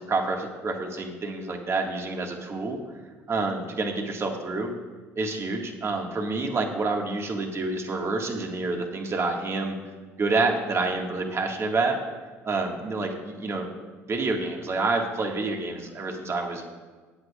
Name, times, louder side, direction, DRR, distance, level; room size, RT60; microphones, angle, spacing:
voice 1, 0.0-2.8 3.3-4.7 5.2-9.7 10.2-12.0 12.4-13.7 14.1-16.6, right 3 dB, 35° right, 2 dB, 1.9 m, -28 dB
18.5 x 8.1 x 2.5 m, 1.4 s
hypercardioid pair, 65°, 8 cm